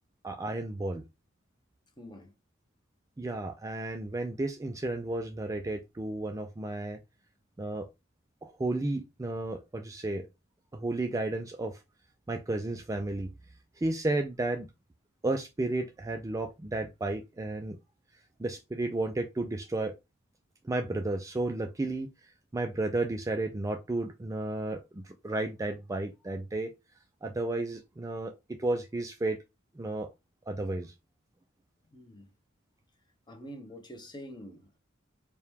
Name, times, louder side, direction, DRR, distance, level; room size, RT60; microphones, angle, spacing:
voice 1, 0.2-1.0 3.2-7.0 7.6-7.9 8.4-10.3 10.7-11.8 12.3-13.3 13.8-14.7 15.2-17.8 18.4-19.9 20.6-22.1 22.5-26.7 27.2-29.4 29.8-30.1 30.5-30.9, right 2 dB, 15° right, 0.4 m, -33 dB
voice 2, 2.0-2.3 31.9-32.3 33.3-34.8, equal, 20° left, 0.8 m, -46 dB
4.5 x 2.3 x 3.5 m
head